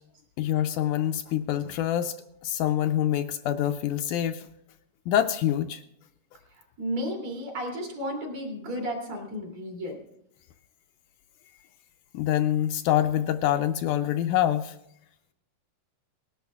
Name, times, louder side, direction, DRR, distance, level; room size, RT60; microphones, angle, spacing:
voice 1, 0.4-2.2 2.4-4.5 5.1-5.8 12.1-14.8, left 11 dB, 80° left, 7 dB, 2.0 m, -25 dB
voice 2, 6.5-10.0, equal, 55° right, 0 dB, 3.5 m, -33 dB
19.0 x 11.5 x 3.5 m, 0.80 s
omnidirectional pair, 3.9 m